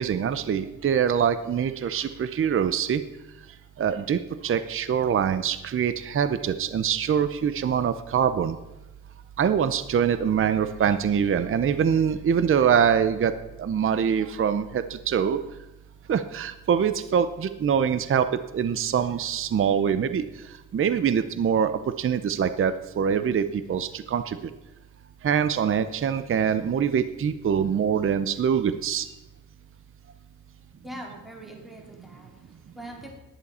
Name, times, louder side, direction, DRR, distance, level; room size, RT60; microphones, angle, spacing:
voice 1, 0.0-3.0 3.8-8.6 9.4-15.4 16.1-18.3 18.5-20.2 20.7-24.4 25.2-29.1, right 7 dB, 40° right, 12 dB, 0.6 m, -24 dB
voice 2, 30.8-33.1, right 1 dB, ahead, -1 dB, 2.3 m, -42 dB
15.0 x 11.0 x 4.2 m, 1.0 s
wide cardioid pair, 145°, 33 cm